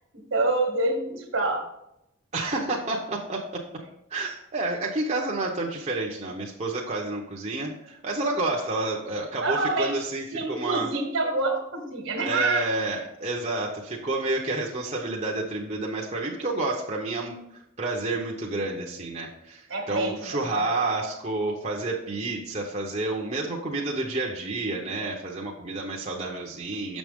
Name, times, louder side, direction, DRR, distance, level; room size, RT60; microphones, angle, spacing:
voice 1, 0.3-1.7 9.4-10.0 10.3-12.7 19.7-20.7, right 2 dB, 65° right, 4 dB, 1.3 m, -27 dB
voice 2, 2.3-3.4 4.1-10.9 12.3-17.4 17.8-27.0, right 2 dB, 35° right, -2 dB, 0.8 m, -29 dB
6.9 x 6.2 x 3.5 m, 0.82 s
head